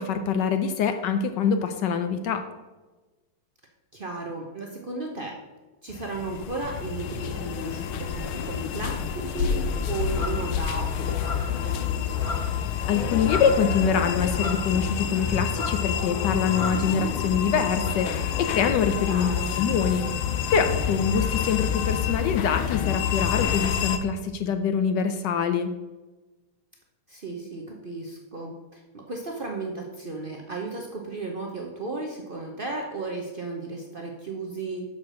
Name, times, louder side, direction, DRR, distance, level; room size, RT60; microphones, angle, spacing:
voice 1, 0.0-2.4 12.9-19.3 19.6-20.1 20.5-25.7, left 6 dB, 70° left, 8 dB, 1.1 m, -25 dB
voice 2, 3.9-5.4 5.8-12.4 19.1-19.5 27.1-34.8, right 3 dB, 65° right, 1 dB, 0.5 m, -35 dB
sound 1, 5.9-24.0, left 8 dB, 90° left, 1.5 m, -28 dB
sound 2, 10.1-10.4 11.1-11.6 12.1-12.7 12.9-13.6 14.3-15.2 15.5-15.9 16.5-16.9 17.8-17.9, left 3 dB, 50° left, 1.9 m, -35 dB
6.5 x 5.9 x 6.2 m, 1.2 s
omnidirectional pair, 2.2 m